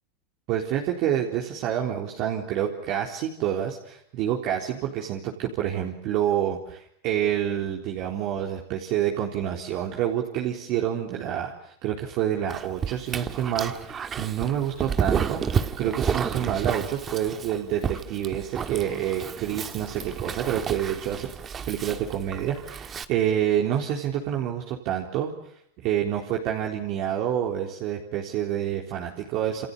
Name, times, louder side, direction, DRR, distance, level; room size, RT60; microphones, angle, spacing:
voice 1, 0.5-15.4 15.8-21.3 21.7-25.3 25.8-29.7, right 10 dB, 50° right, 0 dB, 3.9 m, -28 dB
Dog, 12.5-23.0, right 7 dB, 25° right, 1.8 m, -31 dB
29.0 x 27.5 x 6.9 m, 0.67 s
supercardioid pair, 130°, 0 cm